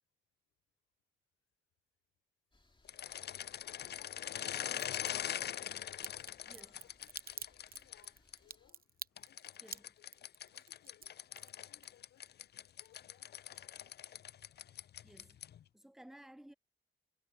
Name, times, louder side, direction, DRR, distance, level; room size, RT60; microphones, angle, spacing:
sound 1, 2.5-8.7, left 2 dB, 25° left, 2.7 m, -71 dB
sound 2, 2.9-8.4 9.2-15.6, left 10 dB, 55° left, 0.4 m, -43 dB
voice 1, 3.7-14.0, left 13 dB, 90° left, 4.7 m, -68 dB
Crack, 4.7-5.1 6.0-12.3 12.6-13.3 13.5-13.6, right 6 dB, 45° right, 0.8 m, -48 dB
voice 2, 15.0-15.4 15.7-16.5, right 1 dB, ahead, 0.5 m, -56 dB
supercardioid pair, 45°, 21 cm